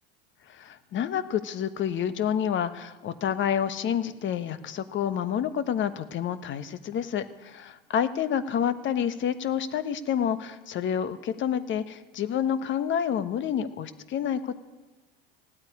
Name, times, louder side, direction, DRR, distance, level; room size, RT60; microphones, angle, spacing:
voice 1, 0.5-14.5, left 8 dB, 40° left, 12 dB, 1.2 m, -28 dB
17.0 x 8.8 x 9.7 m, 1.3 s
hypercardioid pair, 80°, 30 cm